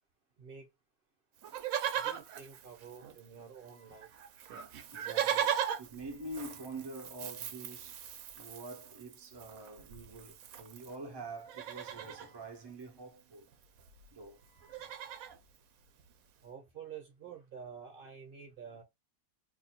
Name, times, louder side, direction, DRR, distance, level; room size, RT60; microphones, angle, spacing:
voice 1, 0.4-0.7 2.0-4.1 16.4-18.8, right 7 dB, 45° right, 0.8 m, -49 dB
Livestock farm animals working animals, 1.4-3.4 3.7-3.8 4.0-11.0 11.4-12.3 13.5-13.6 13.8-14.1 14.4-15.4 16.0-16.1, right 9 dB, 70° right, 1.0 m, -38 dB
voice 2, 3.6-4.1 4.9-13.5 14.1-15.1, right 2 dB, 30° right, 0.4 m, -47 dB
2.7 x 2.3 x 4.2 m
omnidirectional pair, 1.6 m